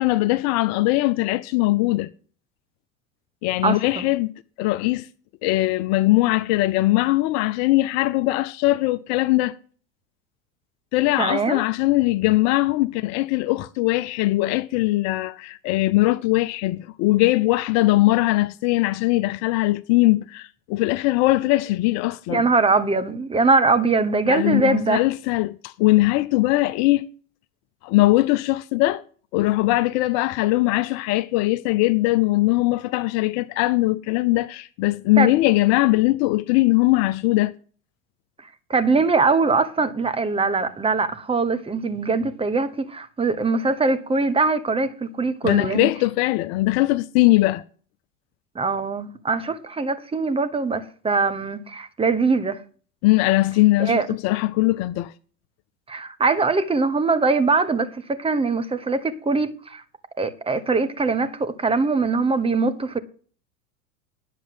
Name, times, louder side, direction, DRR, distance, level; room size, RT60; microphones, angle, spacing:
voice 1, 0.0-2.1 3.4-4.3 4.6-5.1 5.4-9.6 10.9-22.4 24.3-27.1 27.8-29.0 29.3-37.5 45.4-47.6 53.0-55.1, left 19 dB, 45° left, 0.6 m, -20 dB
voice 2, 3.6-4.1 11.2-11.6 22.3-25.0 35.2-35.3 38.7-45.9 48.5-52.6 53.8-54.1 55.9-59.8 60.2-63.0, right 4 dB, 15° right, 1.2 m, -22 dB
10.0 x 7.4 x 7.7 m
hypercardioid pair, 85°, 39 cm